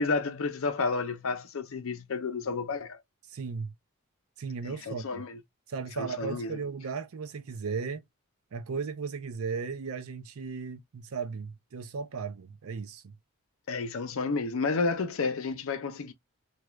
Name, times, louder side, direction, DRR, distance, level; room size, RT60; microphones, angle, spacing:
voice 1, 0.0-3.0 4.6-5.4 6.0-6.6 13.7-16.1, left 4 dB, 60° left, 0.5 m, -31 dB
voice 2, 3.3-3.7 4.4-5.2 5.7-8.0 8.5-13.2, right 5 dB, 70° right, 0.5 m, -36 dB
2.3 x 2.3 x 2.9 m
head